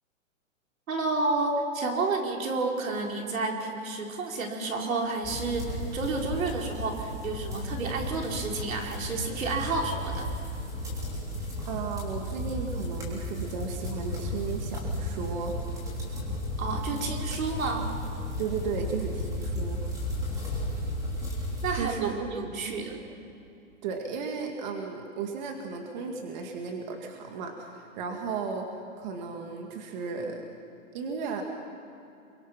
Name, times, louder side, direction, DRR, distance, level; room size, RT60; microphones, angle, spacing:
voice 1, 0.9-10.3 16.6-17.9 21.6-23.0, right 3 dB, 80° right, 1 dB, 4.4 m, -30 dB
sound 1, 5.2-21.7, left 1 dB, 10° right, 3.3 m, -34 dB
voice 2, 11.7-15.5 18.4-20.0 21.7-22.3 22.6-22.8 23.8-30.4 30.9-31.4, right 5 dB, 35° right, 3 dB, 2.0 m, -35 dB
27.5 x 23.5 x 5.8 m, 2.7 s
hypercardioid pair, 170°, 40 cm